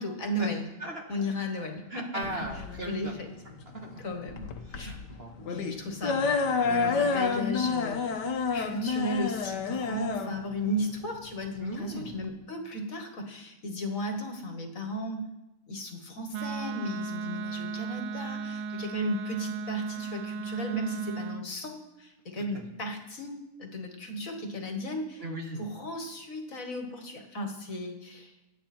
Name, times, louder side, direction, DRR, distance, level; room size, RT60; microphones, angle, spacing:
voice 1, 0.0-0.7 1.1-2.5 2.8-3.3 4.0-5.0 5.4-15.3 15.7-25.2 25.6-28.4, equal, 50° left, 4 dB, 2.1 m, -35 dB
voice 2, 1.9-3.1 3.7-3.9 4.7-5.3 6.6-6.9 7.3-7.4 11.6-12.1 25.2-25.6, right 1 dB, 35° right, 1 dB, 1.9 m, -38 dB
sound 1, 2.2-12.3, left 5 dB, 80° left, 1.7 m, -30 dB
Wind instrument woodwind instrument, 16.3-21.5, right 5 dB, 85° right, 1.4 m, -35 dB
25.5 x 9.2 x 4.4 m, 0.94 s
omnidirectional pair, 1.8 m